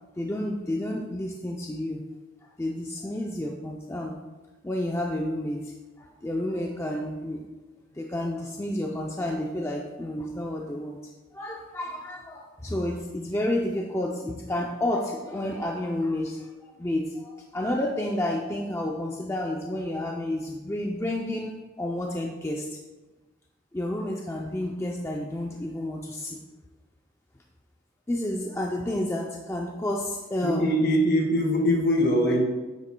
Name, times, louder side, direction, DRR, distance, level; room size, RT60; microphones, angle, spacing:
voice 1, 0.2-2.0 2.6-4.2 4.6-7.4 7.9-11.0 11.3-16.5 16.8-22.8 23.7-26.4 28.1-30.8, left 1 dB, 15° left, 0 dB, 0.4 m, -30 dB
voice 2, 30.4-32.4, equal, 55° left, 1 dB, 1.7 m, -22 dB
9.3 x 8.1 x 2.2 m, 1.2 s
head